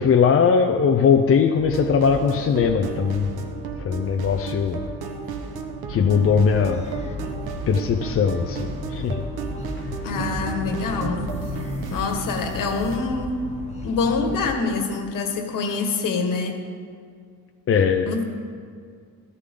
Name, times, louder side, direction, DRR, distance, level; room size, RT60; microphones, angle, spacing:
voice 1, 0.0-3.3 3.8-4.8 5.9-6.9 7.7-9.2 17.7-18.2, left 6 dB, 40° left, 4 dB, 0.6 m, -20 dB
sound 1, 1.6-13.0, right 4 dB, 80° right, 1.3 m, -33 dB
sound 2, 5.9-14.6, left 2 dB, 20° left, 1.3 m, -35 dB
voice 2, 10.0-11.3 11.9-13.5 13.8-16.6 18.1-18.2, left 4 dB, 60° left, 4 dB, 1.7 m, -25 dB
14.5 x 14.0 x 3.8 m, 2.1 s
cardioid pair, 135°, 37 cm